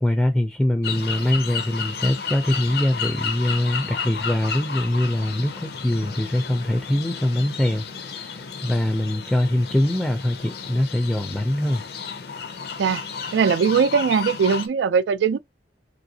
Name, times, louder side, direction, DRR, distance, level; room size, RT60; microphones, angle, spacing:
voice 1, 0.0-11.8, left 1 dB, ahead, 0.4 m, -23 dB
sound 1, 0.8-14.7, left 6 dB, 65° left, 0.5 m, -32 dB
voice 2, 13.3-15.4, right 6 dB, 90° right, 0.3 m, -20 dB
3.2 x 2.6 x 2.7 m
head